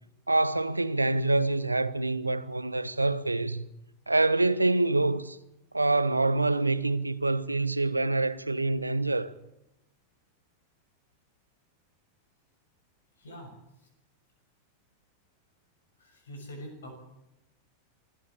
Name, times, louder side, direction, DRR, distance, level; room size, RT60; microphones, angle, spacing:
voice 1, 0.3-3.6 4.1-5.4 5.7-9.3, right 2 dB, 85° right, 0.9 m, -26 dB
voice 2, 13.2-13.9 16.0-16.9, equal, 65° left, 6.3 m, -45 dB
25.5 x 12.5 x 8.5 m
figure-of-eight pair, 90°, 0 cm